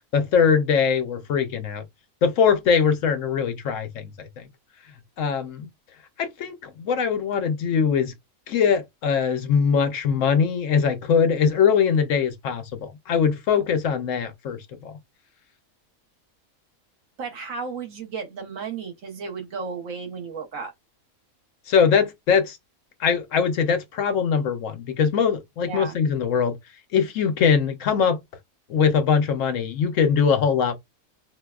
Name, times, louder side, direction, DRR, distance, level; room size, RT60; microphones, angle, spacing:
voice 1, 0.1-1.8 2.2-4.4 5.2-5.7 6.2-8.1 8.5-14.9 21.7-22.6 23.0-26.6 26.9-28.2 28.7-30.7, left 6 dB, 70° left, 0.9 m, -22 dB
voice 2, 17.2-20.7 25.7-26.0, right 5 dB, 70° right, 1.3 m, -33 dB
4.5 x 2.1 x 2.3 m
omnidirectional pair, 1.5 m